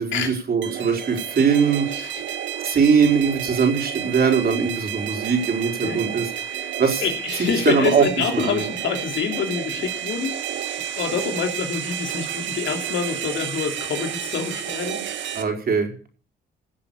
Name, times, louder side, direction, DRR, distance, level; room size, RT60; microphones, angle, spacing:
voice 1, 0.0-1.9 2.6-6.3 6.8-7.0 7.6-8.1 8.3-8.6 15.3-16.1, right 6 dB, 50° right, 3 dB, 4.6 m, -21 dB
sound 1, 0.6-15.4, right 10 dB, 70° right, 1.7 m, -31 dB
voice 2, 1.9-2.4 5.8-15.0, left 6 dB, 70° left, 5 dB, 3.1 m, -27 dB
17.0 x 7.4 x 7.3 m, 0.41 s
cardioid pair, 90°, 20 cm